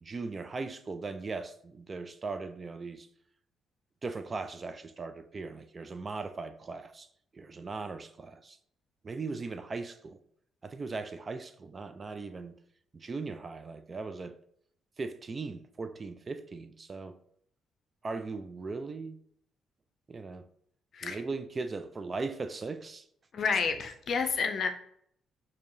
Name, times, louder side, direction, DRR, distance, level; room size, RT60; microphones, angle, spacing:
voice 1, 0.0-3.1 4.0-7.1 7.3-8.6 9.0-10.2 10.6-12.5 12.9-14.4 15.0-17.1 18.0-19.2 20.1-20.5 21.0-23.1, right 4 dB, 35° right, 0.3 m, -38 dB
voice 2, 23.3-24.7, left 5 dB, 55° left, 0.5 m, -29 dB
4.6 x 2.8 x 2.6 m
cardioid pair, 90°, 0 cm